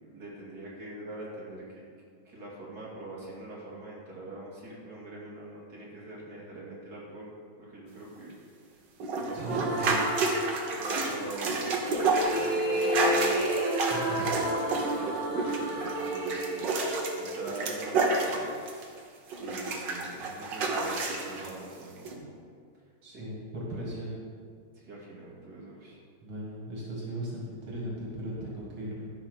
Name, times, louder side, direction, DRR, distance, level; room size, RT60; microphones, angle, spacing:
voice 1, 0.0-1.8 2.2-7.3 7.6-8.3 9.1-9.8 10.7-13.5 14.9-16.7 17.2-18.5 19.0-22.3 23.1-23.3 23.7-23.8 24.7-26.0, right 2 dB, 50° right, -6 dB, 3.1 m, -43 dB
sound 1, 9.0-19.0 19.3-21.5 22.1-22.2, right 3 dB, 65° right, 1.9 m, -30 dB
voice 2, 9.3-10.1 13.9-14.3 23.0-24.2 26.2-29.1, right 1 dB, 80° right, -4 dB, 2.8 m, -37 dB
sound 2, 9.4-11.1 11.8-17.9, right 1 dB, 10° right, 2.2 m, -31 dB
13.0 x 5.8 x 6.4 m, 2.2 s
omnidirectional pair, 2.2 m